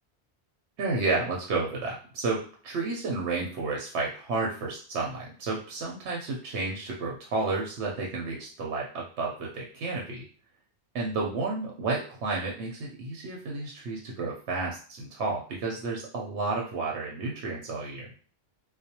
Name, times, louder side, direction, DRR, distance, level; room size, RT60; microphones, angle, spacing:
voice 1, 0.8-10.2 10.9-18.1, right 3 dB, 85° right, -2 dB, 0.9 m, -31 dB
2.4 x 2.1 x 2.8 m, 0.42 s
omnidirectional pair, 1.1 m